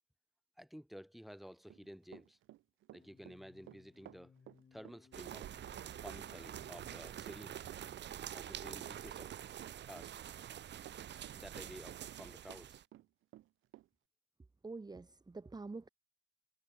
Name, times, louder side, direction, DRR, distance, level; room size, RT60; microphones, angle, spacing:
voice 1, 0.6-2.4 2.9-4.3 4.7-5.5 6.0-7.6 8.3-9.3 9.8-10.2 11.3-12.8, equal, ahead, 6.9 m, -52 dB
Run, 1.5-12.6 12.9-13.9, right 15 dB, 85° right, 2.6 m, -56 dB
sound 1, 2.9-8.6, left 6 dB, 40° left, 3.0 m, -65 dB
sound 2, 5.1-12.8, right 10 dB, 60° right, 1.4 m, -47 dB
voice 2, 14.6-15.9, right 3 dB, 20° right, 1.7 m, -46 dB
cardioid pair, 90°, 20 cm